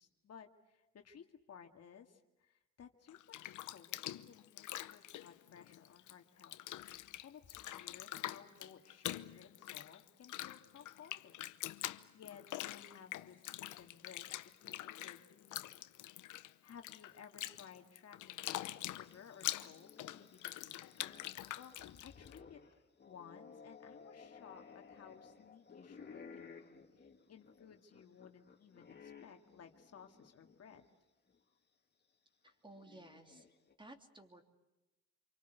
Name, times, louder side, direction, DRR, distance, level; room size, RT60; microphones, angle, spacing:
voice 1, 0.0-6.6 7.0-11.5 12.1-15.6 16.3-22.8 23.1-30.8, left 7 dB, 55° left, 5 dB, 2.0 m, -58 dB
Bathtub (filling or washing), 3.1-6.1 6.4-22.4, left 14 dB, 80° left, 0.9 m, -45 dB
sound 1, 18.6-30.9 31.3-31.4 32.5-33.7, left 5 dB, 35° left, 2.7 m, -58 dB
voice 2, 32.4-33.4 33.8-34.4, right 2 dB, 15° right, 5 dB, 3.1 m, -56 dB
27.0 x 24.0 x 8.0 m, 1.0 s
cardioid pair, 90°, 30 cm